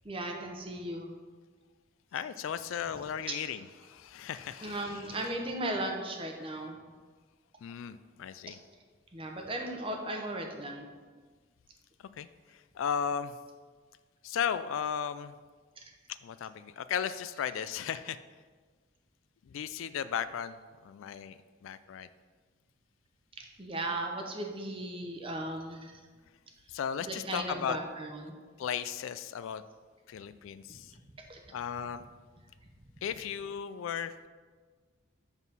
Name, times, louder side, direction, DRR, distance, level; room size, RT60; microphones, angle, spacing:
voice 1, 0.0-1.1 4.6-6.8 8.4-8.5 9.1-10.9 23.4-25.9 27.0-28.4 30.7-30.8 31.3-31.4, right 1 dB, 25° right, 2 dB, 0.8 m, -36 dB
voice 2, 2.1-5.3 7.6-8.6 12.2-13.3 14.2-15.3 16.2-18.2 19.5-20.6 20.8-22.1 26.7-27.8 28.6-29.6 30.1-30.9 31.5-32.1 33.0-34.3, left 8 dB, 75° left, 13 dB, 0.3 m, -36 dB
7.1 x 4.0 x 5.5 m, 1.5 s
head